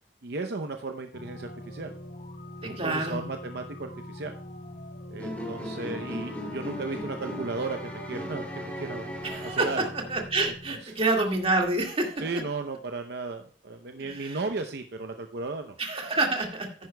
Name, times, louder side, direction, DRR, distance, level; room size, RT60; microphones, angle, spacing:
voice 1, 0.2-1.9 2.6-4.3 5.1-9.1 9.4-9.9 10.8-10.9 12.2-15.8, right 3 dB, 65° right, 6 dB, 0.7 m, -35 dB
sound 1, 1.1-10.8, left 1 dB, 55° left, 1.4 m, -43 dB
voice 2, 2.6-3.3 9.2-9.8 10.1-12.2 14.0-14.4 15.8-16.7, right 2 dB, 35° right, 2 dB, 2.0 m, -27 dB
sound 2, 5.2-10.1, equal, 10° left, 2.8 m, -37 dB
14.0 x 10.5 x 2.3 m, 0.42 s
head